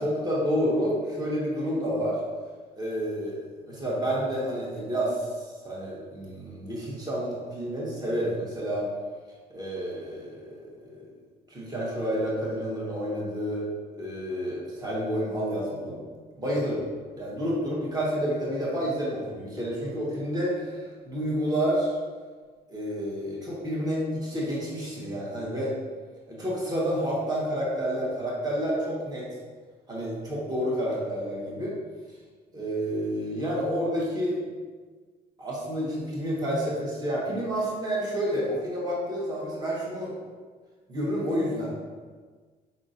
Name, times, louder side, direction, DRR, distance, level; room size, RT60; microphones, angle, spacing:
voice 1, 0.0-2.2 2.7-8.9 9.5-11.1 11.5-13.6 14.0-16.0 16.4-16.8 17.2-21.9 22.7-25.8 26.3-29.3 29.9-31.7 32.5-34.4 35.4-40.1 40.9-41.8, equal, 25° right, -6 dB, 1.4 m, -29 dB
5.4 x 3.6 x 2.6 m, 1.5 s
cardioid pair, 110°, 17 cm